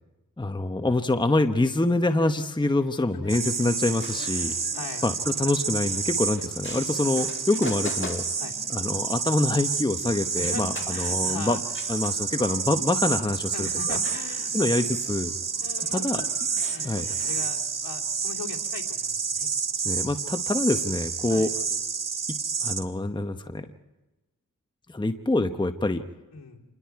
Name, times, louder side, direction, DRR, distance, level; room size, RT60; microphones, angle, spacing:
voice 1, 0.4-4.6 5.0-8.2 8.7-11.6 11.9-14.0 14.5-15.3 15.9-16.2 16.8-17.1 19.8-21.5 22.3-23.7 24.9-26.0, left 2 dB, 10° left, 8 dB, 0.9 m, -26 dB
sound 1, 3.2-17.5, left 2 dB, 30° left, 2.2 m, -45 dB
sound 2, 3.3-22.8, right 5 dB, 60° right, 1.2 m, -29 dB
voice 2, 4.3-5.1 6.6-7.0 8.4-8.5 10.3-11.6 13.5-14.7 15.6-16.3 16.7-19.5 21.3-21.5 26.3-26.6, left 4 dB, 70° left, -1 dB, 2.8 m, -40 dB
27.0 x 21.0 x 4.7 m, 1.1 s
cardioid pair, 60°, 37 cm